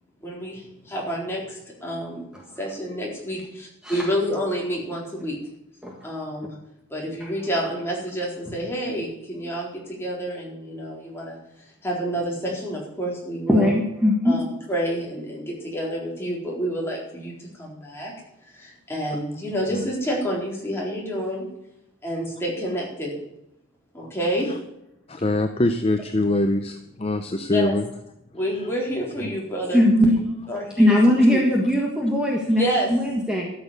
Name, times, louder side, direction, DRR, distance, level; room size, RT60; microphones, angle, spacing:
voice 1, 0.2-2.3 2.6-5.4 6.0-6.6 6.9-13.7 14.2-18.1 18.5-21.5 22.0-23.2 23.9-24.6 27.5-27.7 28.3-30.1 30.5-31.4 32.6-32.9, equal, 10° left, -3 dB, 4.0 m, -29 dB
voice 2, 13.5-14.4 29.7-30.2 30.8-33.5, left 1 dB, 5° right, -1 dB, 1.6 m, -19 dB
voice 3, 25.1-27.8, left 2 dB, 30° left, 7 dB, 0.6 m, -23 dB
13.0 x 7.2 x 8.1 m, 0.83 s
head